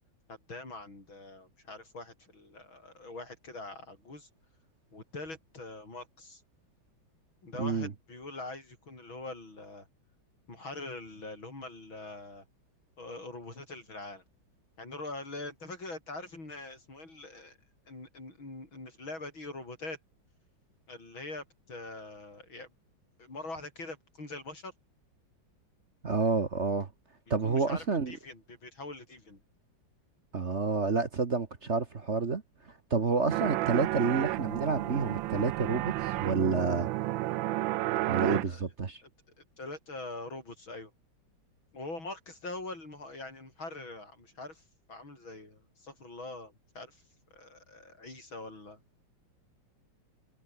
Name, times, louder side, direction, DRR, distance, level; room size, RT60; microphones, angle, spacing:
voice 1, 0.3-4.3 4.9-6.4 7.4-9.9 10.5-12.4 13.0-14.2 14.8-17.6 17.9-20.0 20.9-22.7 23.2-24.7 27.4-29.4 33.1-33.3 38.2-38.6 39.0-39.1 39.6-40.9 41.7-47.0 47.3-48.8, left 2 dB, 80° left, 8.4 m, -43 dB
voice 2, 7.6-7.9 26.0-26.9 27.3-28.1 30.3-32.4 32.9-36.9 38.0-39.0, right 4 dB, 40° right, 1.5 m, -29 dB
sound 1, 33.3-38.5, right 16 dB, 80° right, 1.3 m, -31 dB
omnidirectional pair, 2.2 m